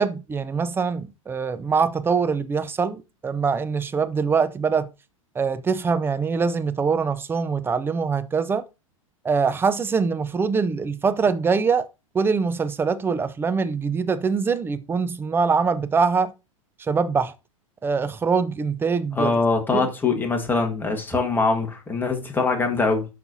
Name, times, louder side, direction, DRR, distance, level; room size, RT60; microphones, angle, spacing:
voice 1, 0.0-4.9 5.4-8.6 9.2-11.9 12.1-16.3 16.9-17.3 17.8-19.3 19.7-19.9, right 5 dB, 10° right, 0.5 m, -23 dB
voice 2, 19.1-23.1, left 3 dB, 10° left, 1.6 m, -23 dB
12.0 x 4.2 x 2.7 m
figure-of-eight pair, 95°, 18 cm